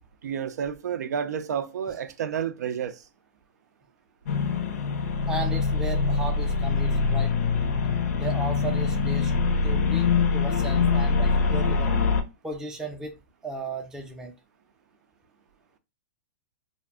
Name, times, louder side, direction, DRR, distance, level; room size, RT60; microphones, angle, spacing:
voice 1, 0.2-3.0, right 8 dB, 85° right, 0.4 m, -30 dB
sound 1, 4.3-12.2, left 4 dB, 65° left, 0.6 m, -24 dB
voice 2, 5.3-7.4 8.1-9.3 9.6-11.9 12.4-13.2 13.4-14.3, right 2 dB, 5° right, 0.4 m, -35 dB
2.5 x 2.0 x 3.4 m
hypercardioid pair, 150°, 9 cm